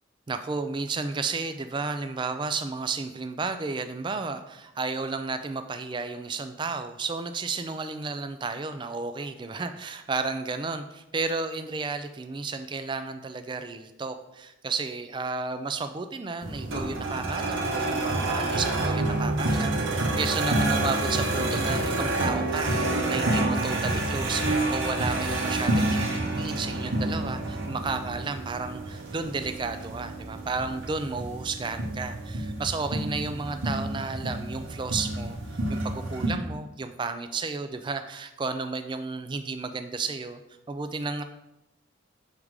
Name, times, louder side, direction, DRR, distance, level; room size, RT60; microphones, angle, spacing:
voice 1, 0.3-26.0 26.4-35.4 35.7-40.4 40.7-41.2, right 4 dB, 25° right, 9 dB, 0.3 m, -32 dB
sound 1, 16.4-36.3, right 2 dB, 70° right, 1.0 m, -28 dB
6.5 x 3.6 x 4.8 m, 0.91 s
head